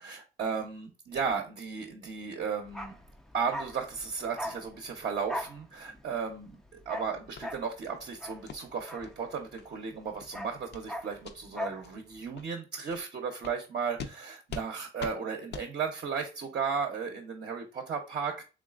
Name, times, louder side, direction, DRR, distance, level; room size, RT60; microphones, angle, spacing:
voice 1, 0.0-3.0 3.3-6.6 6.9-18.4, right 6 dB, 50° right, 1 dB, 0.8 m, -35 dB
Bark, 2.6-9.7 10.0-11.9 12.1-12.3, equal, ahead, 0.4 m, -40 dB
sound 1, 7.4-7.5 7.9-8.0 8.5-8.6 9.0-9.1 9.6-9.7 10.1-10.3 10.7-10.9 11.2-11.4 11.8-11.9 12.4-12.5 12.9-13.0 13.4-13.6 14.0-14.1 14.5-14.7 15.0-15.2 15.5-15.7, left 5 dB, 60° left, 0.6 m, -42 dB
3.6 x 3.1 x 2.4 m, 0.31 s
cardioid pair, 90°, 20 cm